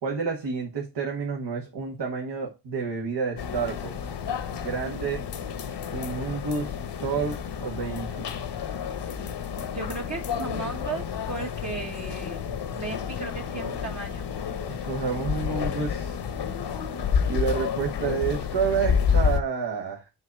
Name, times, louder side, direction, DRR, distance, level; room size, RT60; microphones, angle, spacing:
voice 1, 0.0-4.1 4.6-5.2 5.9-8.3 14.7-16.2 17.3-20.1, right 5 dB, 75° right, -1 dB, 1.5 m, -29 dB
sound 1, 3.4-19.4, left 7 dB, 70° left, 1.0 m, -30 dB
voice 2, 9.7-12.4 12.7-14.8, right 3 dB, 40° right, 0 dB, 1.2 m, -36 dB
7.8 x 2.8 x 5.9 m, 0.26 s
cardioid pair, 60°, 43 cm